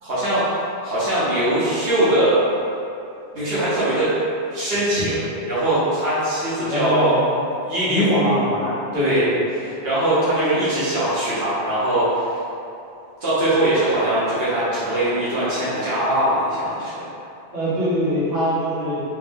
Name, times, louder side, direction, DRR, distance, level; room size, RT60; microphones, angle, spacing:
voice 1, 0.0-2.4 3.3-4.1 4.5-7.2 7.6-8.3 8.9-9.3 9.6-12.4 13.2-17.0, right 1 dB, 60° right, -12 dB, 1.2 m, -21 dB
voice 2, 6.7-7.3 7.9-9.5 17.5-19.0, left 1 dB, 85° right, -12 dB, 1.6 m, -23 dB
3.2 x 2.6 x 3.5 m, 2.7 s
omnidirectional pair, 1.1 m